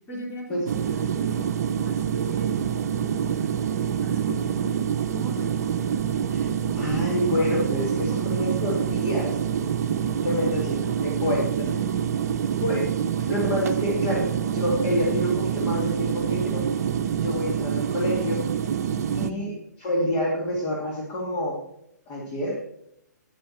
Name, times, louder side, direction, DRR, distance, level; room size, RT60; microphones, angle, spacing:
voice 1, 0.1-4.8 5.1-6.1 10.8-11.1 11.6-12.0 13.0-13.1 19.1-19.5, right 2 dB, 20° left, -1 dB, 3.4 m, -39 dB
sound 1, 0.7-19.3, right 8 dB, 55° right, 0.7 m, -26 dB
voice 2, 6.7-9.4 10.2-11.7 12.6-12.9 13.3-16.6 17.2-18.4 19.1-19.5 19.8-21.6 22.1-22.6, left 1 dB, 35° left, -3 dB, 2.4 m, -27 dB
9.7 x 8.8 x 4.3 m, 0.79 s
hypercardioid pair, 135°, 10 cm